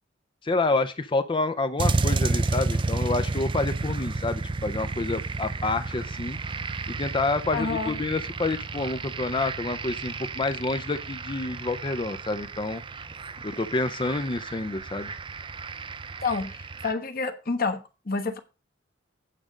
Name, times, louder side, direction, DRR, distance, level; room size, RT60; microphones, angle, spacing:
voice 1, 0.4-6.4 6.9-12.8 13.4-15.1, left 3 dB, 25° left, 0.5 m, -28 dB
sound 1, 1.8-16.9, right 3 dB, 25° right, 0.4 m, -31 dB
voice 2, 7.5-8.0 16.2-18.4, left 4 dB, 50° left, 1.2 m, -29 dB
8.6 x 5.0 x 6.2 m
head